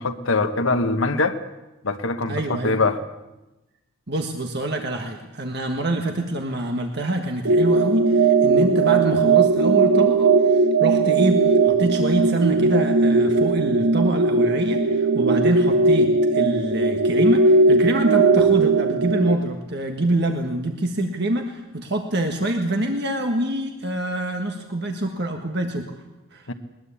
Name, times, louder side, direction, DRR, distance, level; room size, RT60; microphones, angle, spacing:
voice 1, 0.0-1.4 1.8-3.0 26.5-26.6, left 3 dB, 70° left, 9 dB, 1.3 m, -23 dB
voice 2, 2.3-2.8 4.1-25.9 26.3-26.5, right 1 dB, 50° right, 3 dB, 1.6 m, -25 dB
sound 1, 7.4-19.3, right 3 dB, 70° right, 1.2 m, -18 dB
21.0 x 20.5 x 8.5 m, 1.0 s
head